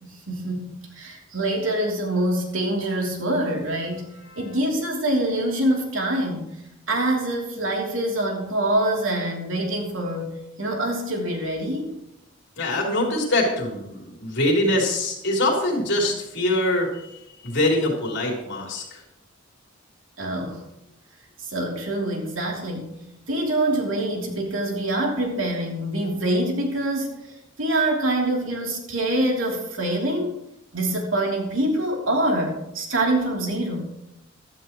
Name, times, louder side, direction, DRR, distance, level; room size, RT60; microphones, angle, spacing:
voice 1, 0.0-4.1 4.4-6.5 6.9-12.0 20.2-20.6 21.4-23.0 23.3-27.2 27.6-30.4 30.7-33.8, right 1 dB, 75° right, 0 dB, 3.2 m, -25 dB
voice 2, 12.6-17.2 17.4-19.0, left 1 dB, 60° left, 0 dB, 3.7 m, -23 dB
15.0 x 12.5 x 3.1 m, 0.86 s
head